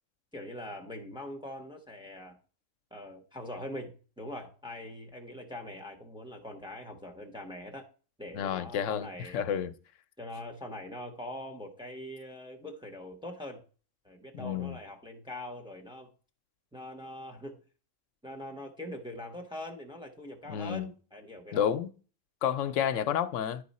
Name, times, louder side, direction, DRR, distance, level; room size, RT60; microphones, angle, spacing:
voice 1, 0.3-2.4 2.9-7.9 8.2-9.4 10.2-13.6 14.0-16.1 16.7-17.6 18.2-21.7, left 1 dB, 5° right, 0.9 m, -42 dB
voice 2, 8.3-9.7 14.3-14.7 20.5-20.9 21.5-21.9 22.4-23.6, left 9 dB, 80° left, 0.9 m, -30 dB
10.5 x 4.7 x 4.2 m
omnidirectional pair, 1.3 m